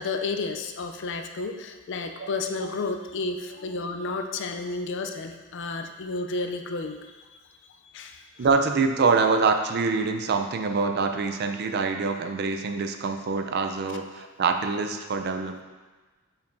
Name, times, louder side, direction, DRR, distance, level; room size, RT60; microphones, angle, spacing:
voice 1, 0.0-7.0 7.9-8.2, left 3 dB, 55° left, 5 dB, 0.4 m, -31 dB
voice 2, 8.4-15.6, right 4 dB, 45° right, 6 dB, 0.4 m, -25 dB
6.5 x 5.7 x 2.6 m, 1.3 s
head